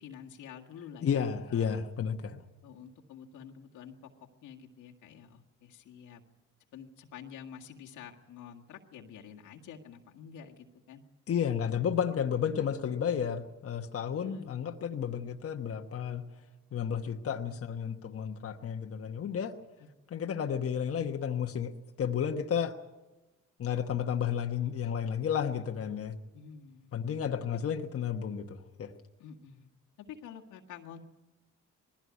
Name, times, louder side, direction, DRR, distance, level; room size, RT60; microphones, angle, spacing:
voice 1, 0.0-1.8 2.6-4.0 4.4-6.2 6.7-11.0 11.6-11.7 14.2-14.8 17.4-17.6 19.8-19.9 26.3-27.0 29.2-29.7 30.0-31.0, left 8 dB, 85° left, 1 dB, 1.9 m, -49 dB
voice 2, 1.0-2.4 11.3-16.2 16.7-19.5 20.1-21.7 22.0-22.7 23.6-26.1 26.9-28.9, left 8 dB, 50° left, 4 dB, 1.2 m, -32 dB
20.0 x 16.0 x 9.5 m, 1.1 s
cardioid pair, 90°, 30 cm